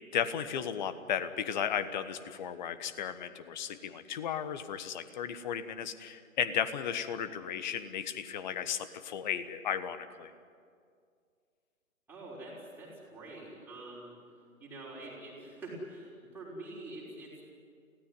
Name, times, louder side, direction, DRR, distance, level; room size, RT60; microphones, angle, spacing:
voice 1, 0.1-10.3, left 8 dB, 35° left, 12 dB, 1.2 m, -35 dB
voice 2, 12.1-17.4, right 2 dB, 5° right, -6 dB, 5.9 m, -46 dB
25.5 x 17.0 x 9.8 m, 2.2 s
figure-of-eight pair, 135°, 42 cm